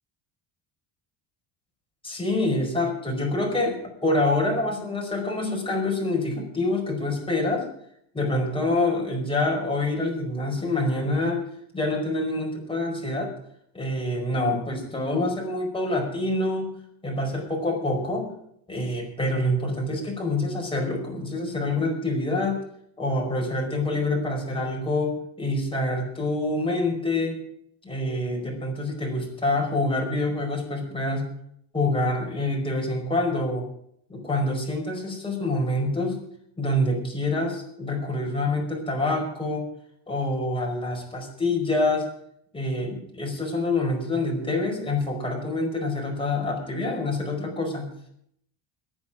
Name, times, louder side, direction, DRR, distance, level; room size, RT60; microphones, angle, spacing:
voice 1, 2.0-7.6 8.1-11.4 11.7-13.3 13.7-16.7 17.0-18.3 18.7-22.6 23.0-27.4 27.8-31.3 31.7-33.7 34.1-36.3 36.6-39.6 40.1-42.1 42.5-47.9, left 2 dB, 10° left, 0 dB, 5.1 m, -26 dB
22.5 x 9.1 x 5.0 m, 0.69 s
cardioid pair, 130°, 47 cm